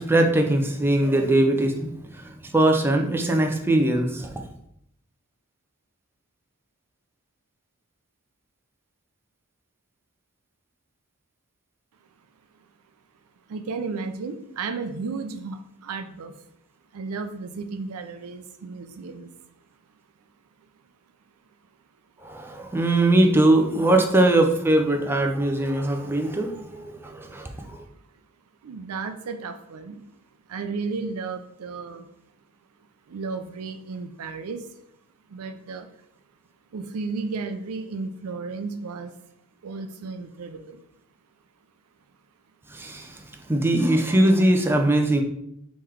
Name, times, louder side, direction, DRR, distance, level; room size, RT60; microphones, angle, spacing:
voice 1, 0.0-4.4 22.2-27.8 42.7-43.2 43.5-45.2, right 1 dB, 10° right, 3 dB, 0.4 m, -21 dB
voice 2, 13.5-16.5 16.9-19.3 26.0-26.2 27.0-28.2 28.6-30.1 30.4-32.1 33.0-34.8 35.3-36.0 36.7-39.2 39.6-40.8, right 4 dB, 75° right, 8 dB, 0.5 m, -34 dB
3.8 x 3.1 x 4.5 m, 0.76 s
head